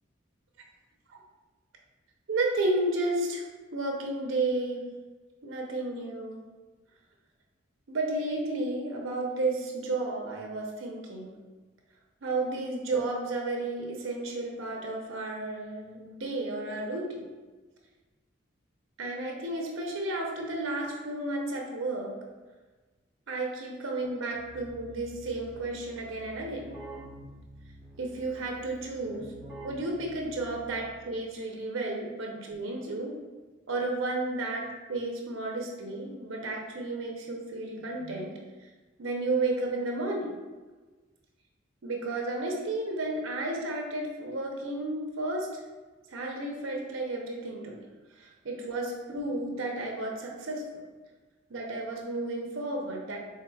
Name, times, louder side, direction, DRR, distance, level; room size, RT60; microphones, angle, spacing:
voice 1, 2.3-3.4 3.7-4.8 5.4-6.4 7.9-11.3 12.2-17.3 19.0-22.1 23.3-26.7 28.0-29.3 29.6-33.1 33.7-34.6 34.9-38.3 39.0-40.3 41.8-45.5 46.1-47.8 48.2-50.8 51.5-53.2, right 2 dB, 90° right, 0 dB, 0.6 m, -32 dB
Keyboard (musical), 24.3-31.2, right 1 dB, 5° right, 1.2 m, -48 dB
4.6 x 3.4 x 2.3 m, 1.3 s
head